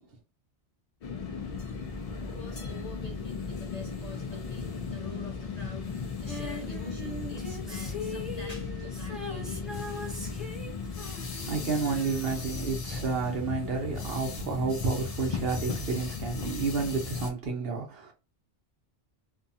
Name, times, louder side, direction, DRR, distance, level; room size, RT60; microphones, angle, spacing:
sound 1, 1.0-17.3, left 4 dB, 65° left, 0.3 m, -36 dB
voice 1, 1.8-10.2, left 2 dB, 40° left, 0.7 m, -47 dB
Female singing, 6.3-13.2 14.4-14.5, left 2 dB, ahead, 0.5 m, -41 dB
voice 2, 11.2-18.1, right 4 dB, 60° right, 0.9 m, -31 dB
2.6 x 2.3 x 2.6 m
omnidirectional pair, 1.2 m